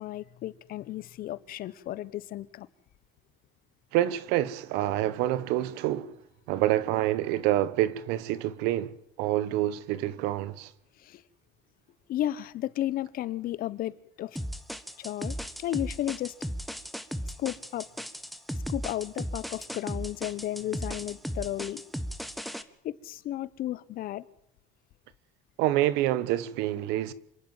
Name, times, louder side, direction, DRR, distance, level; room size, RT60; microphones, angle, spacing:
voice 1, 0.0-2.7 11.0-11.2 12.1-14.4 15.0-16.3 17.4-17.9 18.7-21.8 22.8-24.2, left 13 dB, 60° left, 1.2 m, -33 dB
voice 2, 3.9-6.1 6.5-10.7 25.6-27.1, right 14 dB, 85° right, 1.4 m, -27 dB
sound 1, 14.4-22.6, equal, ahead, 1.5 m, -36 dB
27.5 x 11.0 x 9.2 m
cardioid pair, 105°, 17 cm